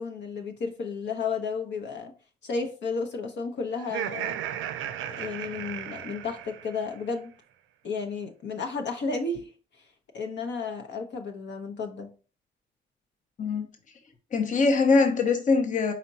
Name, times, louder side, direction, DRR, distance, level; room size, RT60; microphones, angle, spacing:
voice 1, 0.0-2.1 2.4-4.4 5.1-7.3 7.8-9.5 10.1-12.1, left 4 dB, 65° left, 0.9 m, -32 dB
Laughter, 3.8-7.0, right 11 dB, 80° right, 0.4 m, -35 dB
voice 2, 14.3-15.9, left 4 dB, 40° left, 0.8 m, -22 dB
4.2 x 4.2 x 2.8 m
cardioid pair, 90°, 20 cm